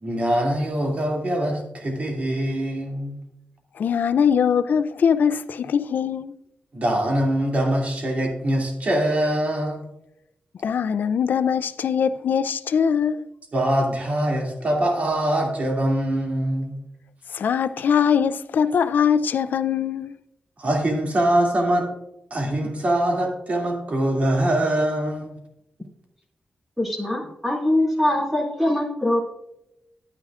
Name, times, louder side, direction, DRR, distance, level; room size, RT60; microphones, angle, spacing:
voice 1, 0.0-3.2 6.7-9.9 13.5-16.8 20.6-21.8 22.3-25.4, right 1 dB, 50° right, 2.5 m, -23 dB
voice 2, 3.8-6.3 10.6-13.2 17.3-20.1, left 7 dB, 80° left, 0.5 m, -21 dB
voice 3, 26.8-29.2, left 1 dB, 5° right, 2.6 m, -22 dB
11.0 x 9.8 x 2.5 m
wide cardioid pair, 110°, 3 cm